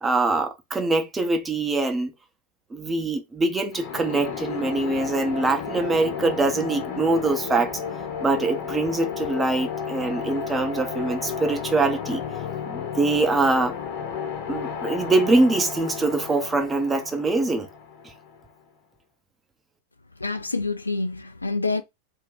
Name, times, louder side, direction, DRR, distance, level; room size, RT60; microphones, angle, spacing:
voice 1, 0.0-2.1 2.7-7.7 8.2-12.2 12.7-13.8 14.5-17.7, right 3 dB, 15° right, 0.6 m, -23 dB
sound 1, 3.7-18.4, left 6 dB, 45° left, 0.7 m, -33 dB
voice 2, 20.2-21.8, left 3 dB, 80° left, 0.3 m, -27 dB
2.5 x 2.2 x 3.7 m
figure-of-eight pair, 90°, 0 cm